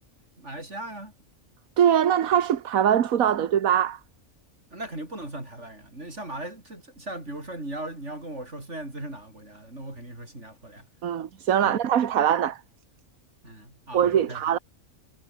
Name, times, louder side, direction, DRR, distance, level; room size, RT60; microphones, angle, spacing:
voice 1, 0.4-1.1 4.7-10.8 11.6-11.8 13.4-14.6, right 1 dB, 55° right, 8.0 m, -38 dB
voice 2, 1.8-4.0 11.0-12.6 13.9-14.6, right 9 dB, 80° right, 1.5 m, -22 dB
omnidirectional pair, 1.5 m